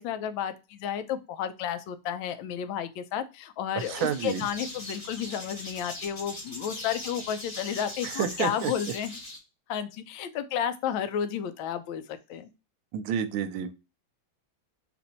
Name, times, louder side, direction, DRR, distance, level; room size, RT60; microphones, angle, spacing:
voice 1, 0.0-9.2 9.7-12.5, left 9 dB, 75° left, 10 dB, 1.3 m, -32 dB
sound 1, 3.8-9.4, left 1 dB, 30° left, 0.8 m, -40 dB
voice 2, 3.9-4.5 8.0-8.7 12.9-13.7, right 9 dB, 80° right, 10 dB, 1.4 m, -29 dB
4.1 x 2.6 x 4.2 m, 0.28 s
omnidirectional pair, 2.2 m